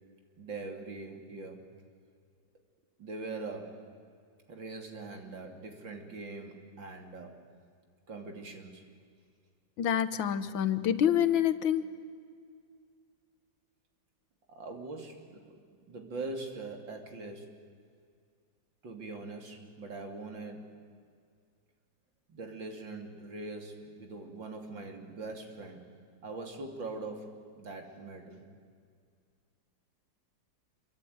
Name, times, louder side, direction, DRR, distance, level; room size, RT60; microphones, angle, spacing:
voice 1, 0.4-1.7 3.0-3.8 4.5-7.4 8.1-8.9 14.5-15.6 15.9-17.5 18.8-20.7 22.3-25.9 26.2-28.4, right 3 dB, 75° right, 4 dB, 3.6 m, -42 dB
voice 2, 9.8-11.9, left 9 dB, 90° left, 13 dB, 1.9 m, -27 dB
26.0 x 23.5 x 9.5 m, 2.2 s
omnidirectional pair, 2.1 m